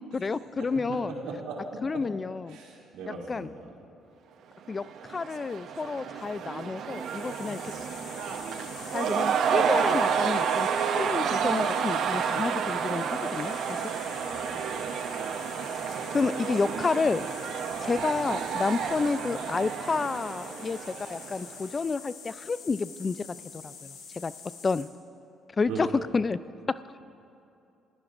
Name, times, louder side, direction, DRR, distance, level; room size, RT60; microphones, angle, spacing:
voice 1, 0.0-1.1 1.8-2.6 3.3-3.5 4.7-7.7 8.9-13.5 16.1-17.3 17.8-23.4 23.6-24.3 24.6-24.9 25.6-25.9 26.1-26.4 26.7-26.8, left 4 dB, 35° left, 16 dB, 0.4 m, -30 dB
voice 2, 0.6-1.8 2.5-3.7 7.7-7.8 14.1-14.9 25.7-26.0, right 3 dB, 85° right, -3 dB, 3.0 m, -39 dB
Cheering / Crowd, 4.7-21.6, right 7 dB, 70° right, 0.8 m, -30 dB
sound 1, 6.9-24.8, left 5 dB, 85° left, 2.3 m, -46 dB
29.5 x 16.0 x 2.6 m, 2.7 s
supercardioid pair, 70°, 0 cm